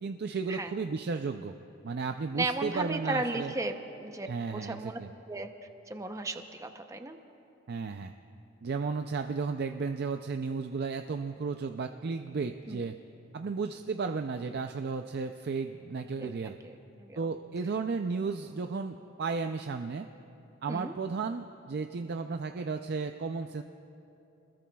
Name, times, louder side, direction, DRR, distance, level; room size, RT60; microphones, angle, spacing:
voice 1, 0.0-1.5 1.8-3.5 4.3-5.1 7.7-8.1 8.6-13.0 13.3-16.6 17.2-20.1 20.6-23.6, right 4 dB, 50° right, 6 dB, 0.4 m, -34 dB
voice 2, 2.4-5.0 5.3-5.5 5.9-7.2 12.7-12.8 16.2-17.3 20.7-20.9, right 2 dB, 15° right, 6 dB, 0.7 m, -35 dB
29.0 x 21.0 x 2.3 m, 2.8 s
head